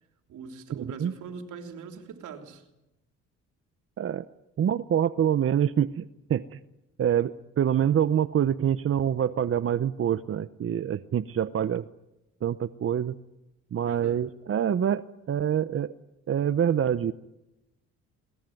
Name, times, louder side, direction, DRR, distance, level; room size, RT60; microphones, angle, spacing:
voice 1, 0.3-2.6 13.8-14.2, right 5 dB, 80° right, 5 dB, 3.2 m, -41 dB
voice 2, 4.6-6.6 7.0-11.8 12.4-13.2 13.7-15.0 15.3-15.9 16.3-17.1, right 9 dB, 45° right, 13 dB, 0.8 m, -26 dB
22.5 x 19.5 x 9.2 m, 0.94 s
cardioid pair, 90°, 30 cm